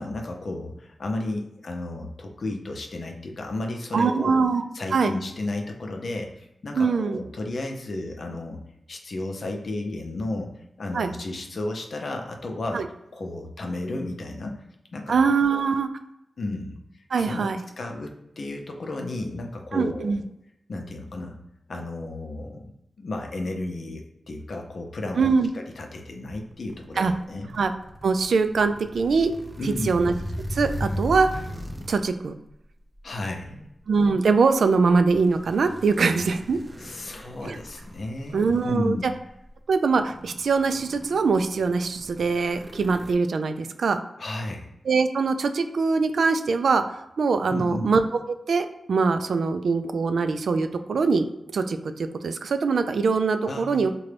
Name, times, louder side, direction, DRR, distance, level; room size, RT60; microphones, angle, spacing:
voice 1, 0.0-4.4 4.7-8.6 8.9-10.5 10.8-12.8 13.1-14.6 14.9-15.6 16.4-17.5 17.8-20.1 20.7-21.4 21.7-27.5 29.6-30.0 33.0-33.7 36.8-39.0 44.2-44.7 47.5-47.9 53.4-53.8, left 2 dB, 65° left, 3 dB, 0.6 m, -33 dB
voice 2, 3.9-4.6 4.9-5.1 6.7-7.2 10.9-11.1 12.7-12.8 15.1-15.9 17.1-17.6 19.7-20.2 25.2-25.5 27.0-27.1 27.5-27.7 28.0-29.3 29.6-30.1 30.5-31.4 31.9-32.3 33.9-36.6 37.4-37.6 38.3-39.0 39.7-44.0 44.9-48.0 48.5-51.3 51.5-53.9, right 4 dB, 80° right, 8 dB, 0.3 m, -23 dB
sound 1, 26.5-32.1 32.9-33.2 35.1-38.9 39.5-39.6 39.9-43.1, equal, 20° right, 0.5 m, -37 dB
3.8 x 2.2 x 3.3 m, 0.83 s
wide cardioid pair, 80°, 0 cm